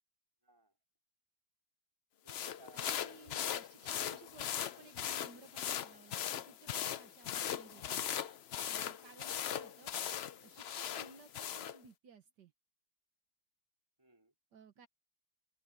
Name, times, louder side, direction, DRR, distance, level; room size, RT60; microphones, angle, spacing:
voice 1, 0.4-0.8 2.2-3.0 8.9-9.2 14.0-14.3, right 3 dB, 15° right, 4.0 m, -64 dB
sound 1, 2.3-11.8, left 10 dB, 80° left, 0.5 m, -39 dB
voice 2, 2.7-8.0 8.3-8.4 8.7-10.0 10.4-12.5 14.5-14.9, right 4 dB, 75° right, 1.9 m, -58 dB
open air
omnidirectional pair, 1.9 m